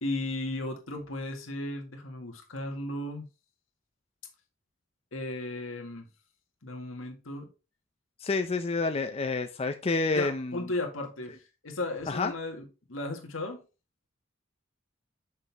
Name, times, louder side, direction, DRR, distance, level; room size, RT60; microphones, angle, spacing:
voice 1, 0.0-3.3 5.1-6.1 6.6-7.5 10.1-11.4 11.6-13.6, left 2 dB, 80° left, 1.8 m, -35 dB
voice 2, 8.2-10.7 12.1-12.3, left 3 dB, 30° left, 0.5 m, -29 dB
6.6 x 6.0 x 3.5 m
head